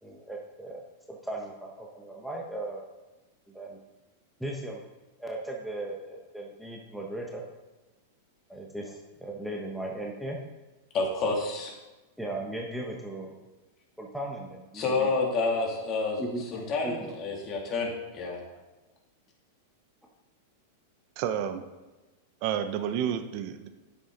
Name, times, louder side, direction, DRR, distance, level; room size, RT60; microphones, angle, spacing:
voice 1, 0.0-2.8 3.5-3.8 4.4-4.8 5.2-7.4 8.5-10.4 12.2-13.3 14.0-15.1 16.2-17.1, right 1 dB, ahead, -1 dB, 1.3 m, -37 dB
voice 2, 10.9-11.7 14.7-16.2 16.5-18.4, left 3 dB, 35° left, -1 dB, 2.8 m, -29 dB
voice 3, 21.2-21.6 22.4-23.7, right 9 dB, 50° right, 9 dB, 0.8 m, -30 dB
9.8 x 7.5 x 4.0 m, 1.2 s
hypercardioid pair, 100°, 0 cm